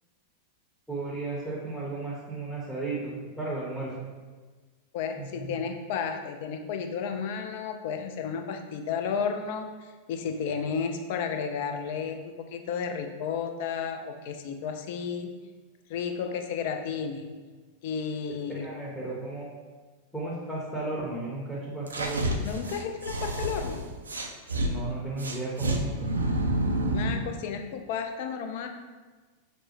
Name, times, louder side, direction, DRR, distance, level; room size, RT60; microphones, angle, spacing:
voice 1, 0.9-4.1 5.2-5.6 18.5-19.5 20.1-22.4 24.5-26.1, right 2 dB, 5° left, -7 dB, 0.7 m, -34 dB
voice 2, 4.9-15.3 15.9-17.3 17.8-18.7 22.4-23.8 26.9-28.7, left 6 dB, 50° left, 5 dB, 0.3 m, -32 dB
sound 1, 21.9-24.7 25.2-27.3, right 1 dB, 75° right, 0.3 m, -29 dB
5.2 x 2.0 x 2.8 m, 1.4 s
figure-of-eight pair, 90°, 0 cm